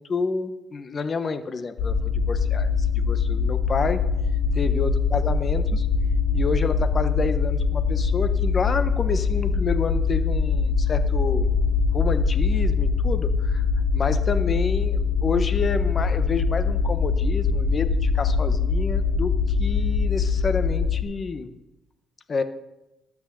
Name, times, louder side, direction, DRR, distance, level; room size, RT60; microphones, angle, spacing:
voice 1, 0.0-4.0 4.6-5.9 6.3-11.5 11.9-13.6 13.9-21.5 22.3-22.4, left 4 dB, 35° left, 11 dB, 1.1 m, -29 dB
sound 1, 1.8-21.0, left 5 dB, 75° left, 2.0 m, -23 dB
12.5 x 6.2 x 7.8 m, 0.94 s
cardioid pair, 110°, 0 cm